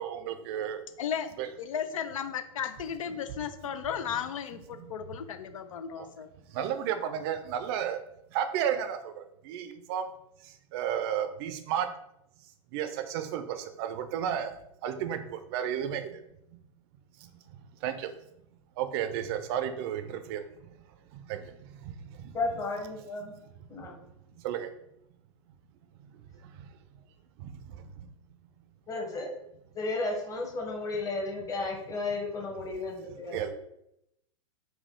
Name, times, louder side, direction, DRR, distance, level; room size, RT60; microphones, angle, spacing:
voice 1, 0.0-0.8 1.4-1.5 4.9-5.0 6.0-6.1 6.5-8.0 8.3-10.1 10.4-11.9 12.7-16.2 17.2-17.3 17.8-18.1 18.8-20.7 21.1-22.4 23.6-24.0 24.3-24.7 26.0-26.7 27.4-28.1 33.3-33.5, right 9 dB, 45° right, 8 dB, 0.5 m, -33 dB
voice 2, 1.0-6.3, left 8 dB, 75° left, 11 dB, 0.5 m, -35 dB
voice 3, 22.3-23.4 23.7-23.9 28.9-29.3 29.7-33.5, left 3 dB, 20° left, 0 dB, 1.0 m, -33 dB
4.2 x 2.2 x 3.7 m, 0.80 s
hypercardioid pair, 110°, 17 cm